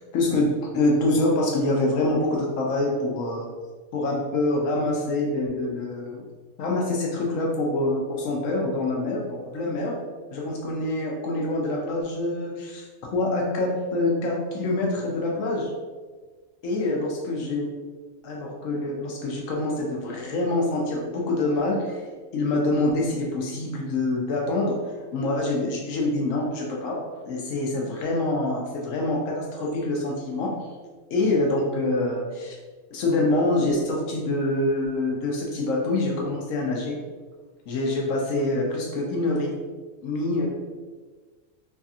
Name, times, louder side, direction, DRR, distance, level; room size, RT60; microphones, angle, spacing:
voice 1, 0.1-3.5 3.9-6.2 6.6-9.9 10.3-12.8 13.1-15.7 16.6-17.8 18.2-22.0 22.3-24.8 25.1-27.0 27.3-30.5 31.1-32.6 32.9-37.0 37.7-39.5 40.0-40.5, left 2 dB, 80° left, -1 dB, 1.0 m, -25 dB
3.2 x 2.6 x 2.4 m, 1.4 s
omnidirectional pair, 1.4 m